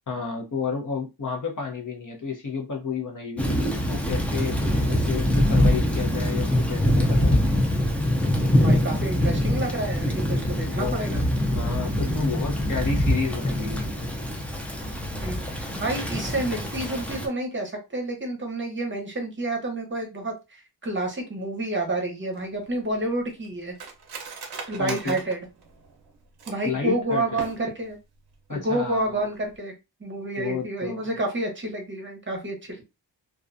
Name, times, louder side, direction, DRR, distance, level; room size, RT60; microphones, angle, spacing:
voice 1, 0.1-4.6 4.9-7.3 10.7-11.1 11.5-14.0 24.8-25.2 26.6-27.4 28.5-29.2 30.4-31.1, left 5 dB, 45° left, 0.8 m, -31 dB
Thunder / Rain, 3.4-17.3, left 1 dB, 5° left, 0.4 m, -24 dB
voice 2, 8.6-11.2 15.2-23.7 24.7-25.5 26.5-28.0 28.5-29.7 30.0-32.8, right 2 dB, 25° right, 0.8 m, -29 dB
Cutlery silverware, 22.3-26.8 27.2-27.9 28.3-28.4 28.7-29.1 29.4-29.6, right 5 dB, 55° right, 0.6 m, -40 dB
2.5 x 2.2 x 2.5 m
wide cardioid pair, 120°, 45 cm